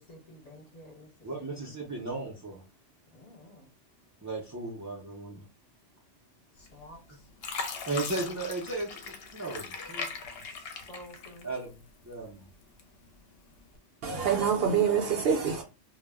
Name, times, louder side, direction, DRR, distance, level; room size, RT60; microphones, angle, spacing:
voice 1, 0.1-1.1 1.6-1.7 3.1-3.6 6.7-7.0 10.7-11.5, left 1 dB, 35° left, 0.9 m, -50 dB
voice 2, 1.2-2.6 4.2-5.4 7.9-10.0 10.3-10.4 11.4-11.8 12.0-12.5 14.4-14.5, right 3 dB, 30° right, 0.3 m, -36 dB
Fill (with liquid), 6.7-7.0 7.4-11.8 12.2-13.1 13.6-13.8, left 5 dB, 65° left, 0.8 m, -39 dB
voice 3, 14.0-15.6, right 7 dB, 65° right, 0.7 m, -26 dB
2.2 x 2.0 x 3.4 m
omnidirectional pair, 1.2 m